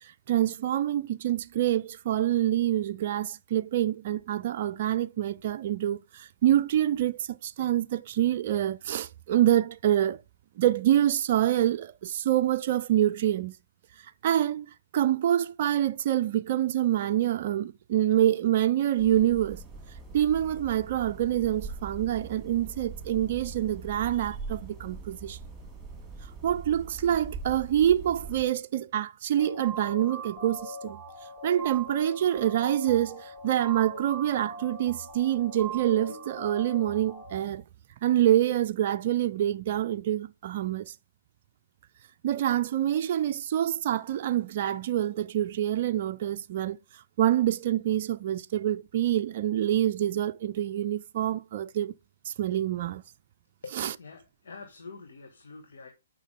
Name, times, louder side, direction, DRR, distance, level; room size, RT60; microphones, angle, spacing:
voice 1, 0.0-10.2 10.6-13.6 14.0-19.6 20.1-25.4 26.4-31.0 31.4-37.6 38.0-40.9 42.2-51.9 52.2-53.0 53.8-53.9, right 12 dB, 45° right, 0.4 m, -26 dB
sound 1, 19.0-28.4, right 4 dB, 10° right, 3.7 m, -42 dB
sound 2, 29.4-37.4, right 2 dB, 5° left, 3.3 m, -40 dB
voice 2, 53.6-55.9, left 4 dB, 65° left, 1.9 m, -46 dB
9.8 x 6.0 x 3.6 m
figure-of-eight pair, 130°, 0 cm